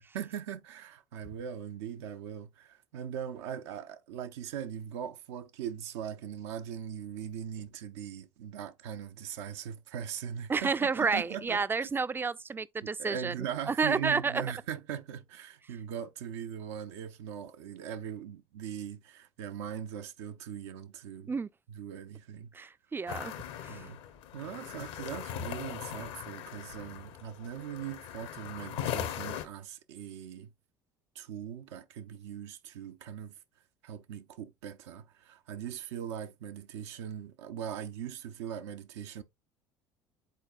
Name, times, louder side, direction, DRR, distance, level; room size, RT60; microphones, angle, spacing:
voice 1, 0.1-11.9 12.8-21.4 21.7-22.7 23.7-24.0 24.3-30.5 31.1-33.4 33.8-39.2, right 9 dB, 70° right, 0.5 m, -40 dB
voice 2, 10.5-13.3 13.7-14.4 21.3-21.5 22.5-23.3 23.6-23.8, right 5 dB, 15° right, 0.3 m, -30 dB
sound 1, 23.1-29.4, left 10 dB, 70° left, 0.9 m, -39 dB
10.0 x 4.0 x 2.3 m
hypercardioid pair, 65°, 15 cm